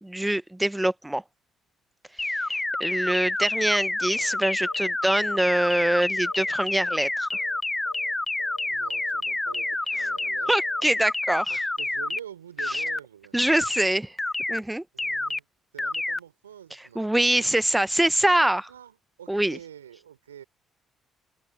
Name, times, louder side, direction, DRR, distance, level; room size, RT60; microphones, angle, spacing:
voice 1, 0.0-1.2 2.5-7.3 10.5-11.5 12.7-12.8 13.3-14.1 14.5-14.8 16.9-18.7 19.3-19.6, right 1 dB, 10° right, 1.1 m, -24 dB
sound 1, 2.2-12.2 12.6-13.0 13.4-13.8 14.2-14.6 15.0-15.4 15.8-16.2, left 2 dB, 15° left, 1.1 m, -28 dB
sound 2, 4.1-4.4 4.6-4.9 5.2-6.5 6.8-7.1 7.3-7.6 7.9-8.1 8.4-8.7 8.9-9.2 9.5-9.7 10.0-10.3 10.5-10.8, left 7 dB, 90° left, 1.6 m, -47 dB
voice 2, 8.7-10.5 11.5-13.4 14.9-15.4 15.7-17.8 18.7-20.4, right 9 dB, 90° right, 3.9 m, -45 dB
open air
hypercardioid pair, 45°, 0 cm